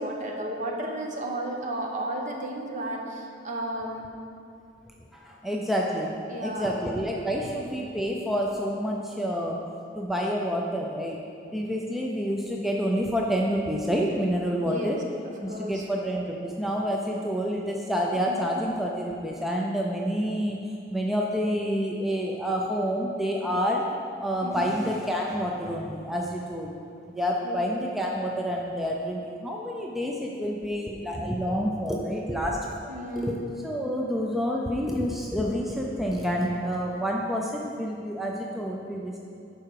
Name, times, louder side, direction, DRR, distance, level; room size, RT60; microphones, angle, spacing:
voice 1, 0.0-4.0 6.3-6.7 14.6-15.0 15.5-15.9 18.1-18.4 24.4-24.7 27.4-27.7 32.9-33.4, right 1 dB, 40° right, 0 dB, 1.0 m, -33 dB
voice 2, 5.1-6.1 6.4-9.6 9.9-11.2 11.5-15.0 15.4-20.6 20.9-23.8 24.2-26.7 27.1-33.4 33.6-39.2, equal, ahead, -2 dB, 0.5 m, -28 dB
11.5 x 4.8 x 4.7 m, 2.5 s
head